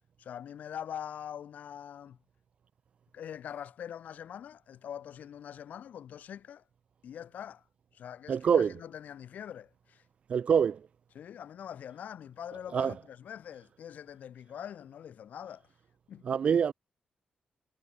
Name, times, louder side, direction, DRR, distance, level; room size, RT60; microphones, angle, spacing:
voice 1, 0.2-2.2 3.1-6.6 7.0-7.6 7.9-10.0 11.1-15.7 16.1-16.3, left 9 dB, 70° left, 3.0 m, -43 dB
voice 2, 8.3-8.7 10.3-10.8 12.7-12.9 16.3-16.7, right 7 dB, 45° right, 0.4 m, -25 dB
wide cardioid pair, 165°, 3 cm